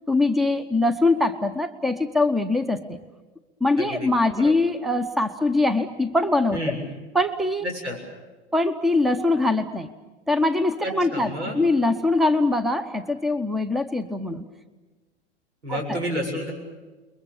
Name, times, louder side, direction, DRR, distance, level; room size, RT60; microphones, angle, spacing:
voice 1, 0.1-3.0 3.6-6.6 7.1-7.7 8.5-9.9 10.3-14.5 15.7-16.0, left 2 dB, ahead, 12 dB, 0.9 m, -22 dB
voice 2, 3.8-4.1 4.3-4.5 6.5-6.8 7.6-8.0 10.8-11.6 15.6-16.5, equal, 80° right, 2 dB, 7.2 m, -30 dB
29.5 x 22.0 x 7.1 m, 1.2 s
figure-of-eight pair, 90°, 34 cm